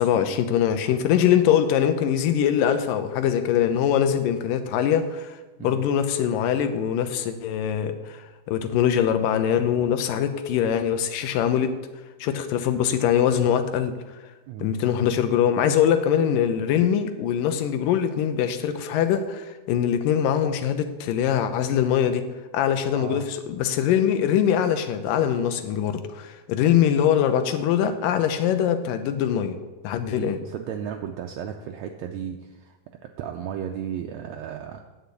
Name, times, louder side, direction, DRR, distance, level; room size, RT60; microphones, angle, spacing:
voice 1, 0.0-11.8 12.2-13.9 14.6-22.2 22.5-29.6 29.8-30.4, left 9 dB, 90° left, 9 dB, 2.5 m, -23 dB
voice 2, 23.0-23.3 30.1-32.8 33.0-34.8, right 8 dB, 80° right, 4 dB, 1.6 m, -34 dB
9.6 x 6.6 x 8.3 m, 1.2 s
omnidirectional pair, 3.8 m